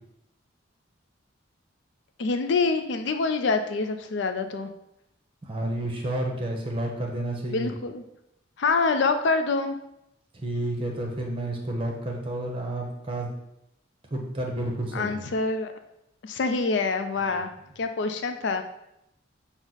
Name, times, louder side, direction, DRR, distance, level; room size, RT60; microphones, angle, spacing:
voice 1, 2.2-4.7 7.5-8.0 8.6-9.8 14.9-15.7 16.2-18.6, left 4 dB, 65° left, 8 dB, 0.4 m, -26 dB
voice 2, 5.4-7.7 10.3-13.3 14.1-15.3 17.2-17.4, right 1 dB, 30° right, 1 dB, 0.7 m, -30 dB
6.0 x 2.1 x 3.9 m, 0.82 s
head